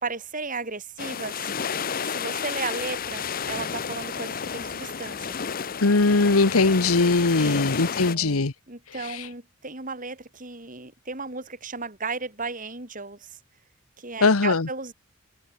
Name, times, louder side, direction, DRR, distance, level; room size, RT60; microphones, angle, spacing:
voice 1, 0.0-1.5 2.0-5.3 7.4-13.4 14.0-14.9, right 4 dB, 35° right, 3.8 m, -35 dB
sound 1, 1.0-8.1, left 6 dB, 40° left, 0.7 m, -31 dB
voice 2, 5.8-8.5 9.1-9.2 14.2-14.7, left 3 dB, 80° left, 1.2 m, -20 dB
head